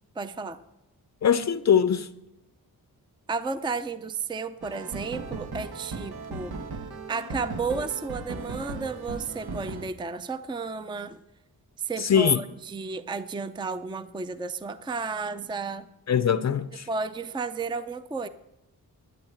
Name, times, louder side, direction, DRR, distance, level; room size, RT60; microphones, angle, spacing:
voice 1, 0.2-0.6 3.3-6.6 7.1-11.2 11.8-15.9 16.9-18.3, right 4 dB, 15° right, 0.5 m, -33 dB
voice 2, 1.2-2.1 12.0-12.4 16.1-16.9, left 8 dB, 45° left, 0.5 m, -22 dB
sound 1, 4.6-9.8, right 3 dB, 90° right, 1.5 m, -37 dB
12.0 x 9.9 x 7.9 m
wide cardioid pair, 140°, 37 cm